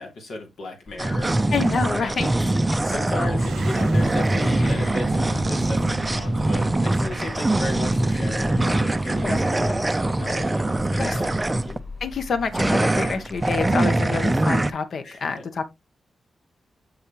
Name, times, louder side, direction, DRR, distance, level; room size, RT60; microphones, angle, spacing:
voice 1, 0.0-2.3 2.8-11.8 15.0-15.4, left 2 dB, 80° left, 3.1 m, -36 dB
sound 1, 0.9-13.8, left 3 dB, 20° left, 3.0 m, -42 dB
sound 2, 1.0-11.8 12.5-14.7, right 2 dB, 15° right, 0.4 m, -23 dB
voice 2, 1.5-2.5 4.6-4.8 9.2-9.4 11.0-11.2 12.0-15.6, left 5 dB, 60° left, 1.1 m, -27 dB
sound 3, 3.2-12.4, right 7 dB, 85° right, 0.5 m, -40 dB
7.1 x 6.4 x 3.2 m
wide cardioid pair, 115°, 0 cm